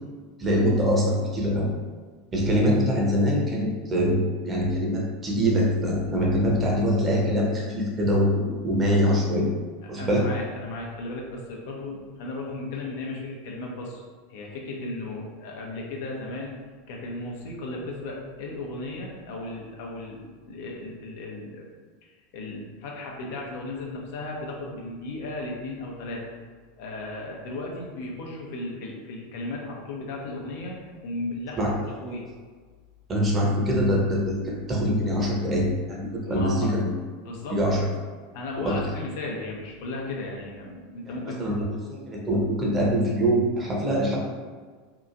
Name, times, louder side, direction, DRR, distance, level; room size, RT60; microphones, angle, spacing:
voice 1, 0.4-1.7 2.3-9.5 9.9-10.3 31.6-31.7 32.1-32.2 33.1-36.9 37.5-37.8 38.6-38.7 41.4-44.2, equal, 25° right, -3 dB, 0.8 m, -24 dB
voice 2, 9.8-14.0 14.3-16.6 16.9-21.7 22.0-26.3 26.8-32.3 36.3-36.7 37.2-37.8 38.3-41.4, left 2 dB, 65° left, -1 dB, 0.6 m, -35 dB
2.8 x 2.4 x 2.5 m, 1.5 s
hypercardioid pair, 90°, 0 cm